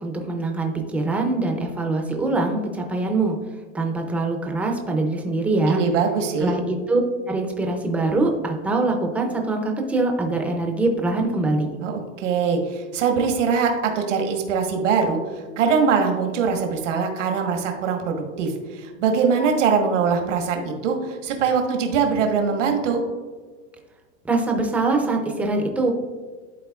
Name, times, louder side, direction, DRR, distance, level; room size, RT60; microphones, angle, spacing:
voice 1, 0.0-3.4 3.7-5.8 6.4-7.0 7.3-11.7 24.2-25.9, right 2 dB, 5° right, 2 dB, 0.4 m, -23 dB
voice 2, 5.7-6.6 11.8-15.2 15.6-23.0, right 5 dB, 80° right, 4 dB, 1.3 m, -22 dB
11.5 x 3.9 x 2.3 m, 1.4 s
supercardioid pair, 140°, 37 cm